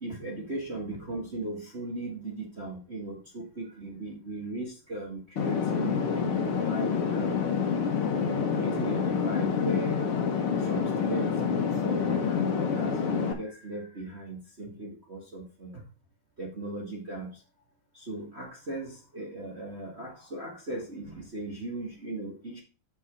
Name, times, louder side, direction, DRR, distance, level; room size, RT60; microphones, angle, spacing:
voice 1, 0.0-7.5 8.2-10.0 10.6-15.8 16.4-17.4 17.9-22.6, right 2 dB, 30° right, -2 dB, 1.3 m, -37 dB
sound 1, 5.4-13.3, left 6 dB, 55° left, 1.6 m, -27 dB
6.3 x 6.2 x 6.1 m, 0.35 s
omnidirectional pair, 3.8 m